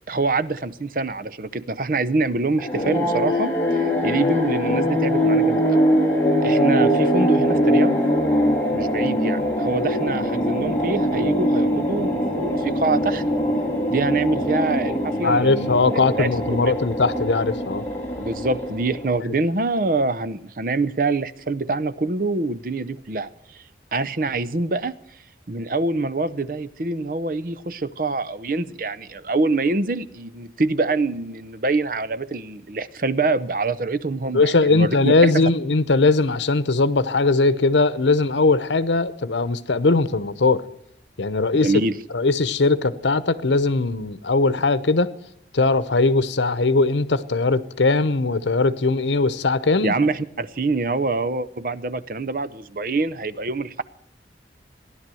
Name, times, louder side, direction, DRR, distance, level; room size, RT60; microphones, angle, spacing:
voice 1, 0.1-5.8 6.4-8.0 8.7-13.2 13.9-16.7 18.2-23.6 23.9-24.9 25.5-35.5 41.6-42.0 49.8-53.8, right 3 dB, 50° right, 0.7 m, -25 dB
sound 1, 2.6-19.2, equal, 10° left, 2.3 m, -22 dB
voice 2, 15.2-17.8 34.3-40.6 41.2-41.7 42.1-45.1 45.5-49.9, left 3 dB, 85° left, 0.8 m, -20 dB
16.5 x 11.0 x 7.7 m
head